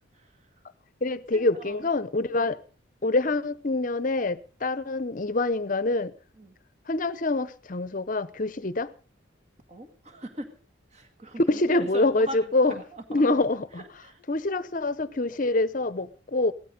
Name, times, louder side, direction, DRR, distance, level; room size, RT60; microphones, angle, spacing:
voice 1, 0.1-0.6 1.1-1.9 2.3-2.5 6.3-6.6 9.7-10.6 10.9-13.2 13.7-14.2, right 1 dB, 35° right, 2.0 m, -41 dB
voice 2, 1.0-2.6 3.0-6.1 6.9-8.9 11.5-12.7 13.1-13.8 14.3-16.5, left 2 dB, 40° left, 0.7 m, -25 dB
17.0 x 13.0 x 5.3 m
head